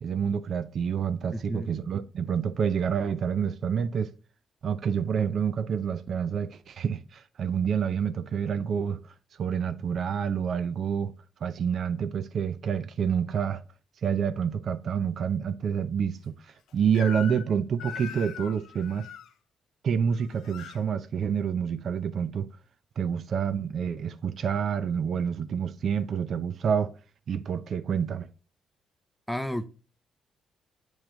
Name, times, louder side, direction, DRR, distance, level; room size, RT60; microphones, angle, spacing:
voice 1, 0.0-4.1 4.6-9.0 9.4-11.1 11.4-13.6 14.0-19.1 19.8-22.5 23.0-26.9 27.3-28.3, right 7 dB, 55° right, 0.5 m, -28 dB
voice 2, 1.3-1.7 29.3-29.7, left 1 dB, 5° left, 0.6 m, -32 dB
Crying sobbing / Screech, 16.9-17.5 17.8-19.3 20.1-20.8, left 8 dB, 80° left, 0.6 m, -40 dB
8.5 x 3.2 x 3.8 m
cardioid pair, 90°, 0 cm